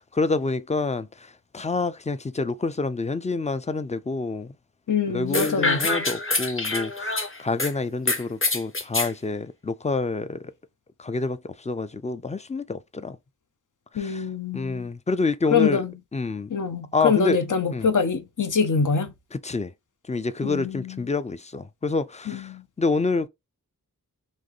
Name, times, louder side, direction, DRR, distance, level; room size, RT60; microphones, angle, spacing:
voice 1, 0.0-4.5 5.1-10.5 11.0-13.2 13.9-14.2 14.5-15.8 16.1-16.5 16.9-17.4 17.7-17.9 19.3-19.7 20.1-22.5 22.8-23.3, left 3 dB, 20° left, 0.4 m, -27 dB
voice 2, 4.9-6.0 13.9-14.9 15.5-15.9 16.5-19.1 20.4-21.1 22.3-22.7, left 5 dB, 65° left, 0.8 m, -25 dB
sound 1, 5.3-7.7 8.1-9.1, left 2 dB, 40° left, 1.0 m, -25 dB
4.2 x 3.0 x 3.1 m
wide cardioid pair, 70°, 33 cm